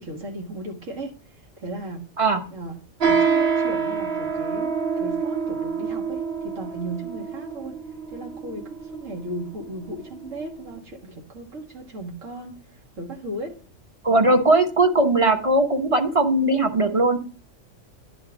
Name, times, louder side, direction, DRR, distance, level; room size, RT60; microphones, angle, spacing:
voice 1, 0.0-2.1 2.5-7.7 8.1-13.6, right 1 dB, 90° right, 1 dB, 2.2 m, -36 dB
sound 1, 3.0-10.8, right 5 dB, 55° right, 1.5 m, -26 dB
voice 2, 14.0-17.2, right 2 dB, 30° right, 4 dB, 0.9 m, -19 dB
10.5 x 3.7 x 7.0 m, 0.40 s
omnidirectional pair, 1.3 m